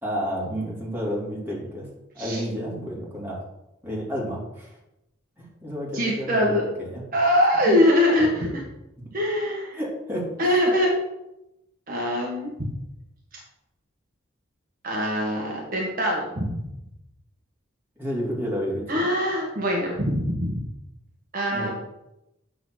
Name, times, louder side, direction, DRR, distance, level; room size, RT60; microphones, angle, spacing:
voice 1, 0.0-1.9 2.1-3.4 3.8-4.8 5.4-7.0 7.7-7.8 9.7-10.6 18.0-19.0 21.5-21.7, equal, 10° right, -5 dB, 2.7 m, -31 dB
voice 2, 5.9-6.6 7.1-8.6 9.1-9.8 10.4-10.9 11.9-12.5 14.8-16.5 18.9-20.6 21.3-21.7, left 1 dB, 45° right, -2 dB, 1.3 m, -23 dB
7.8 x 3.9 x 6.3 m, 0.90 s
head